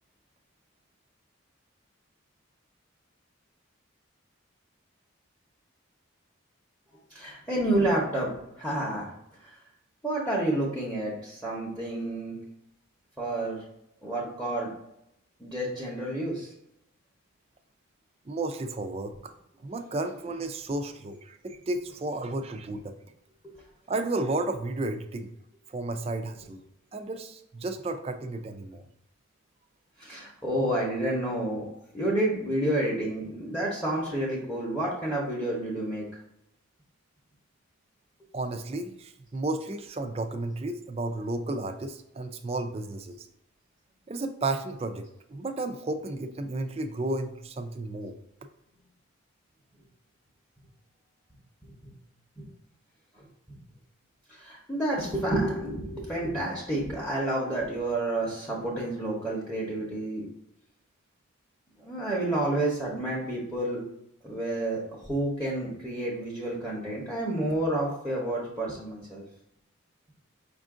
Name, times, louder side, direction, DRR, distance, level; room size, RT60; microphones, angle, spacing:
voice 1, 7.1-8.3 8.6-9.1 9.5-9.6 10.0-12.3 13.2-13.6 14.0-14.7 15.4-16.5 30.0-31.7 31.9-36.0 51.6-51.7 52.4-52.5 54.3-60.3 61.8-63.8 64.2-64.8 65.1-69.2, right 1 dB, 5° left, -4 dB, 0.8 m, -29 dB
voice 2, 18.3-19.3 19.6-22.9 23.9-25.3 25.7-26.6 26.9-28.8 38.3-43.3 44.1-48.1, right 2 dB, 30° right, 7 dB, 0.3 m, -33 dB
5.2 x 2.5 x 3.6 m, 0.80 s
head